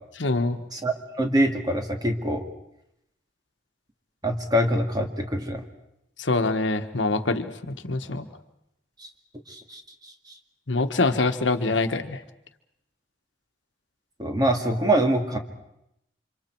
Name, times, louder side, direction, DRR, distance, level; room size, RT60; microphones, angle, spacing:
voice 1, 0.2-0.6 6.2-8.3 10.7-12.2, left 3 dB, 85° left, 8 dB, 1.3 m, -25 dB
voice 2, 0.7-2.4 4.2-5.6 9.0-9.1 9.5-10.1 14.2-15.4, right 1 dB, 20° right, 4 dB, 2.1 m, -24 dB
29.0 x 26.0 x 4.6 m, 0.82 s
head